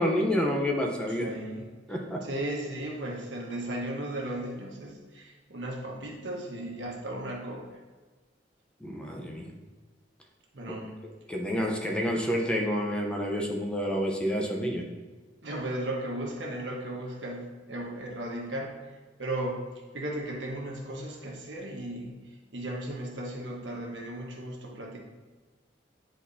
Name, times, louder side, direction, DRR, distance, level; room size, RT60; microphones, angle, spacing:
voice 1, 0.0-1.3 1.9-2.2 8.8-9.5 10.7-10.8 11.3-14.8, equal, 5° left, 0 dB, 0.7 m, -28 dB
voice 2, 1.1-1.7 2.2-7.8 10.5-11.0 15.4-18.7 19.2-19.7 19.9-22.2 22.5-25.0, right 1 dB, 90° right, -1 dB, 1.3 m, -36 dB
9.6 x 4.2 x 2.7 m, 1.4 s
head